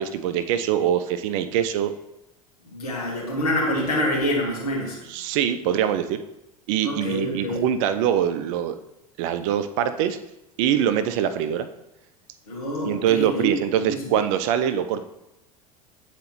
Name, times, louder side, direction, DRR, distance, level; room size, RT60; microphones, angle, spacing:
voice 1, 0.0-1.9 5.0-6.2 6.7-8.8 9.2-10.2 10.6-11.7 12.8-15.0, right 9 dB, 55° right, 11 dB, 0.5 m, -23 dB
voice 2, 2.7-5.0 6.8-7.6 12.5-14.1, left 1 dB, 75° left, -3 dB, 1.8 m, -26 dB
8.6 x 4.1 x 3.1 m, 0.90 s
figure-of-eight pair, 75°, 19 cm